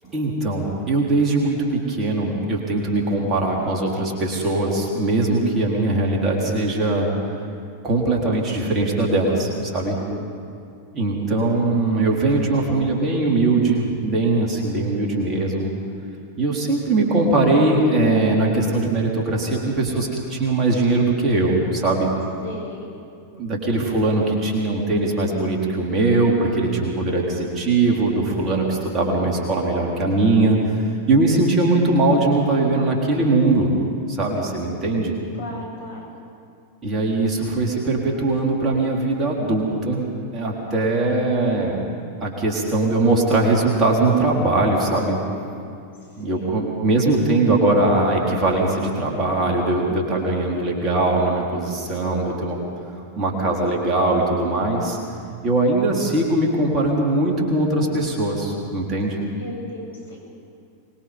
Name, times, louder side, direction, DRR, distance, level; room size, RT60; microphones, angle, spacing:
voice 1, 0.1-7.1 7.8-10.0 10.9-15.7 16.4-22.1 23.3-30.6 31.1-33.7 34.1-35.1 36.8-41.9 42.2-45.2 46.2-52.6 53.2-55.0 55.4-59.2, right 2 dB, 25° right, -2 dB, 4.1 m, -21 dB
voice 2, 22.4-23.0 26.4-26.8 35.4-36.1 46.3-46.5 59.4-60.2, left 1 dB, 75° left, -3 dB, 6.8 m, -36 dB
24.5 x 21.5 x 5.4 m, 2.4 s
figure-of-eight pair, 90°, 0 cm